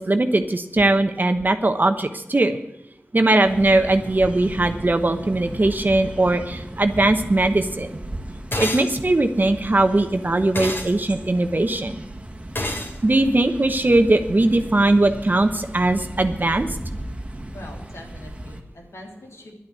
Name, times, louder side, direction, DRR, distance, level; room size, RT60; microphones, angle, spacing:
voice 1, 0.0-2.6 3.1-7.9 8.6-12.0 13.0-16.7, right 2 dB, 40° right, 7 dB, 1.1 m, -20 dB
sound 1, 3.4-18.6, right 1 dB, 25° right, 1.7 m, -36 dB
sound 2, 8.5-8.9 10.5-10.9 12.5-12.9, left 1 dB, 55° left, 2.9 m, -26 dB
voice 2, 17.5-19.5, left 1 dB, 90° left, 0 dB, 3.2 m, -42 dB
11.0 x 8.8 x 9.4 m, 0.87 s
wide cardioid pair, 55°, 5 cm